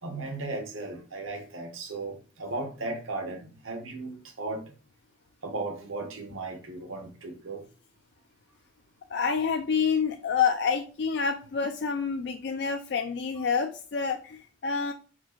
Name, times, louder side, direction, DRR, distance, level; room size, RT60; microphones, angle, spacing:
voice 1, 0.0-4.7 5.4-7.7, right 2 dB, 85° right, 1.1 m, -36 dB
voice 2, 9.1-14.9, left 6 dB, 55° left, 0.4 m, -28 dB
4.4 x 2.5 x 4.3 m
head